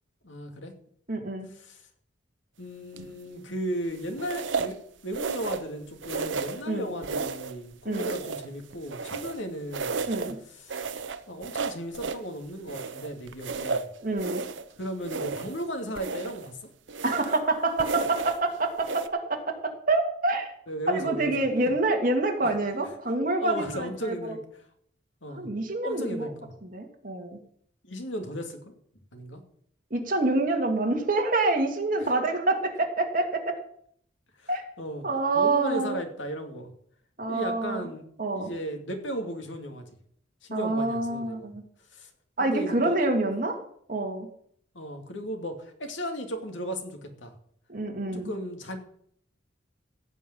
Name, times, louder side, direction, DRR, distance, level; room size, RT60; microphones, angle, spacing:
voice 1, 0.2-0.7 1.5-1.8 2.6-4.8 5.0-10.0 10.6-10.9 11.3-13.9 14.8-16.7 20.7-21.3 22.4-22.5 23.4-24.4 25.2-25.5 25.8-26.5 27.8-28.7 29.1-29.4 32.0-32.1 34.4-34.5 34.8-35.1 35.3-36.7 37.3-38.1 38.4-39.8 40.4-41.5 41.9-42.1 42.4-43.1 44.7-47.3 48.1-48.8, equal, 75° left, 5 dB, 2.6 m, -35 dB
voice 2, 1.1-1.5 6.7-6.9 7.8-8.1 10.1-10.4 14.0-14.4 17.0-20.5 20.9-24.4 25.3-26.3 26.6-27.4 29.9-33.6 34.5-34.6 35.0-36.0 37.2-37.9 38.2-38.5 40.5-41.6 42.4-43.6 43.9-44.3 47.7-48.3, right 2 dB, 45° right, 3 dB, 2.3 m, -27 dB
sound 1, 2.9-3.3 4.2-4.8 5.1-5.7 6.0-6.7 7.0-7.6 7.9-9.4 9.7-10.4 10.7-12.3 12.7-14.7 15.0-15.7 16.0-16.5 16.9-17.5 17.8-18.4 18.8-19.1, right 4 dB, 75° right, 0.9 m, -33 dB
16.0 x 5.5 x 9.4 m, 0.65 s
head